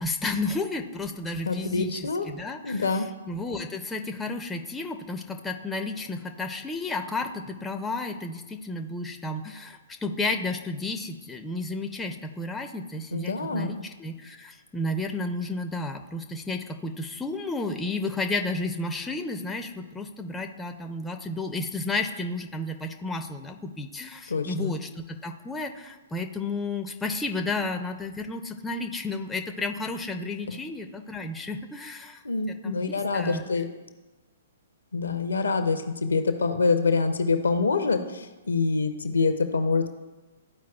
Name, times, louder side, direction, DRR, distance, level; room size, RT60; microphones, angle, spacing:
voice 1, 0.0-32.2 32.6-33.4, left 2 dB, 10° left, 5 dB, 0.5 m, -32 dB
voice 2, 1.5-2.3 2.6-3.1 13.1-13.7 24.3-24.8 32.2-33.7 34.9-39.9, left 4 dB, 70° left, 8 dB, 0.7 m, -26 dB
13.0 x 4.7 x 2.3 m, 1.2 s
figure-of-eight pair, 115°, 0 cm